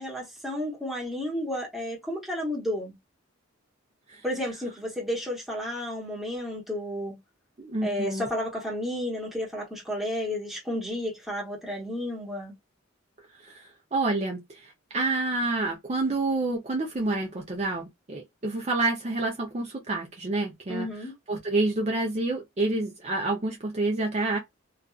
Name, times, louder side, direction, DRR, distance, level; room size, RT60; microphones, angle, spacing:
voice 1, 0.0-2.9 4.2-7.2 7.8-12.5 20.7-21.2, left 1 dB, ahead, 1.2 m, -32 dB
voice 2, 7.6-8.3 13.4-20.9 21.3-24.4, right 2 dB, 35° right, 0.6 m, -28 dB
2.5 x 2.4 x 2.3 m
head